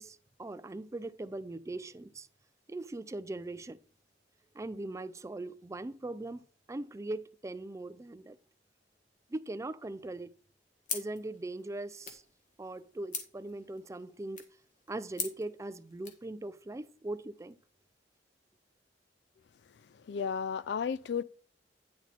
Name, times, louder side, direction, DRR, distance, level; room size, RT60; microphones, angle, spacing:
voice 1, 0.0-2.3 2.7-3.8 4.6-6.4 6.7-8.4 9.3-10.3 10.9-12.2 12.6-14.5 14.9-17.6, right 2 dB, 15° right, 0.4 m, -40 dB
sound 1, 10.8-16.3, left 5 dB, 45° left, 1.7 m, -43 dB
voice 2, 20.1-21.2, left 6 dB, 65° left, 0.4 m, -33 dB
9.5 x 6.1 x 4.1 m
head